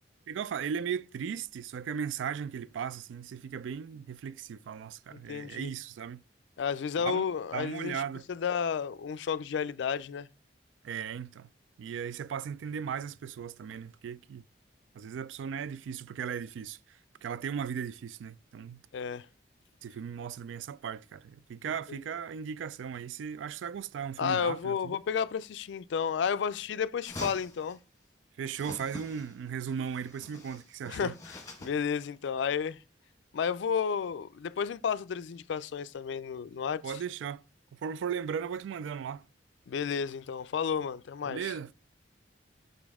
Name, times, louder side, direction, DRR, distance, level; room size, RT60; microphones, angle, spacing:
voice 1, 0.3-6.2 7.0-7.3 7.5-8.2 10.8-11.5 11.8-14.4 14.9-18.8 19.8-24.9 28.4-31.2 36.8-37.4 37.7-39.2 41.3-41.7, right 7 dB, 80° right, 0.3 m, -37 dB
voice 2, 5.1-5.7 6.6-8.0 8.3-10.3 18.9-19.3 21.9-22.0 24.2-27.8 30.9-32.8 33.3-36.8 39.7-41.5, left 7 dB, 70° left, 0.3 m, -32 dB
sound 1, 27.0-27.8 28.5-29.4 29.7-31.9, left 2 dB, 15° left, 1.3 m, -45 dB
5.6 x 5.2 x 3.5 m
head